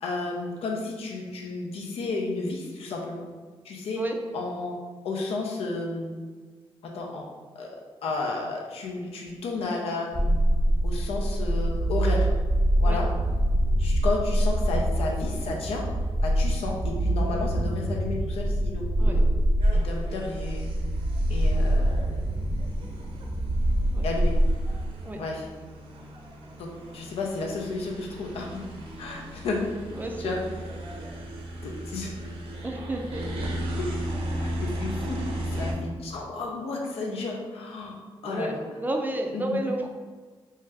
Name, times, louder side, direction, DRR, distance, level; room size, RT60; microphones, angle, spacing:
voice 1, 0.0-3.3 3.6-4.0 4.3-4.8 5.0-6.1 6.8-10.4 10.8-12.3 12.8-13.1 13.8-15.9 16.2-19.3 19.7-20.7 21.3-22.3 24.0-24.4 25.2-25.5 26.6-28.6 29.0-29.6 30.0-30.4 31.6-32.1 33.8-33.9 34.4-38.0 38.2-38.6 39.3-39.5, left 3 dB, 85° left, 0 dB, 0.5 m, -32 dB
sound 1, 10.1-24.9, right 1 dB, 15° left, 0.6 m, -25 dB
sound 2, 19.6-35.7, right 1 dB, 70° right, 0.6 m, -36 dB
voice 2, 30.0-30.4 32.6-33.4 38.2-39.9, right 1 dB, 20° right, 3 dB, 0.4 m, -31 dB
2.7 x 2.3 x 3.2 m, 1.4 s
cardioid pair, 85°, 10 cm